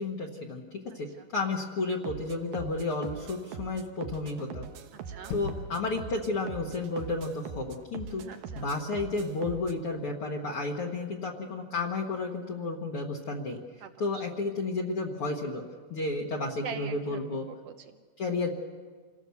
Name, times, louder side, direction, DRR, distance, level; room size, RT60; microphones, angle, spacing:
voice 1, 0.0-4.7 5.3-8.2 8.6-13.6 14.0-15.6 15.9-17.5 18.2-18.5, left 3 dB, 50° left, -1 dB, 1.9 m, -32 dB
voice 2, 0.9-1.3 4.9-5.4 8.0-8.7 13.8-14.5 16.6-18.0, right 7 dB, 70° right, 8 dB, 1.6 m, -44 dB
sound 1, 2.0-9.8, right 7 dB, 85° right, 2.7 m, -43 dB
Gunshot gunfire / Fireworks / Boom, 5.3-10.1, left 5 dB, 70° left, 2.3 m, -45 dB
27.0 x 17.5 x 7.0 m, 1.5 s
omnidirectional pair, 3.7 m